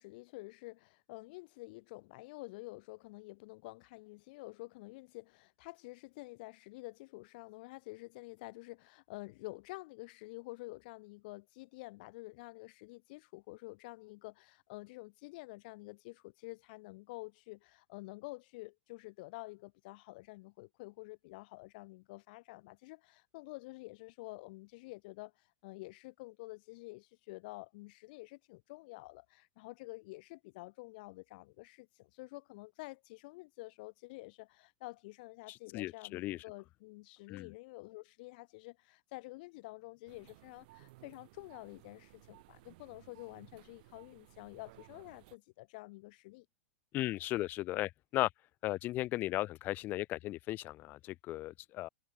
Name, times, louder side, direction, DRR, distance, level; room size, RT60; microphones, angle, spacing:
voice 1, 0.0-46.5, left 23 dB, 55° left, 2.3 m, -49 dB
voice 2, 35.7-36.4 37.3-37.5 46.9-48.3 48.6-51.9, left 16 dB, 35° left, 0.3 m, -36 dB
sound 1, 40.1-45.4, right 21 dB, 55° right, 7.3 m, -60 dB
hypercardioid pair, 105°, 6 cm